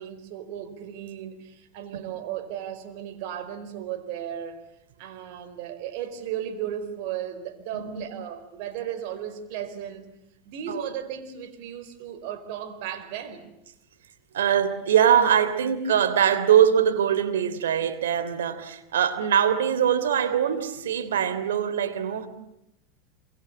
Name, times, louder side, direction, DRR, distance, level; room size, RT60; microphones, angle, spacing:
voice 1, 0.0-4.6 5.0-10.1 10.4-13.5, right 10 dB, 65° right, 4.6 m, -35 dB
voice 2, 14.3-22.3, right 9 dB, 85° right, 3.2 m, -22 dB
27.0 x 25.0 x 8.8 m
hypercardioid pair, 105°, 0 cm